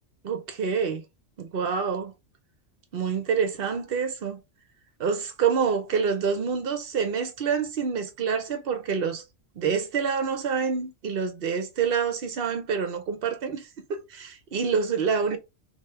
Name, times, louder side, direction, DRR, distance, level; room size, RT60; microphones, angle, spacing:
voice 1, 0.2-1.0 1.4-2.1 2.9-4.4 5.0-9.2 9.6-13.6 13.9-15.4, right 6 dB, 55° right, 0.8 m, -27 dB
3.3 x 2.8 x 3.1 m
omnidirectional pair, 1.3 m